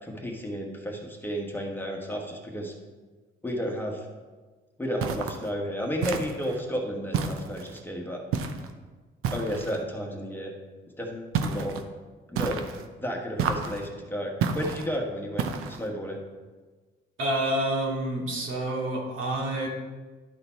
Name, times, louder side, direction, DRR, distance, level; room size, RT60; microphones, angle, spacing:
voice 1, 0.0-2.7 3.4-4.1 4.8-8.2 9.3-10.5 11.0-11.8 12.3-12.6 13.0-16.2, equal, 10° left, 0 dB, 1.3 m, -32 dB
sound 1, 5.0-5.5 6.0-6.6 7.1-7.8 8.3-8.7 9.2-9.8 11.3-11.8 12.4-12.9 13.4-13.9 14.4-14.9 15.4-15.9, right 6 dB, 85° right, 0.7 m, -30 dB
voice 2, 17.2-19.7, right 1 dB, 65° right, -3 dB, 2.4 m, -28 dB
11.5 x 3.9 x 4.5 m, 1.3 s
cardioid pair, 80°, 21 cm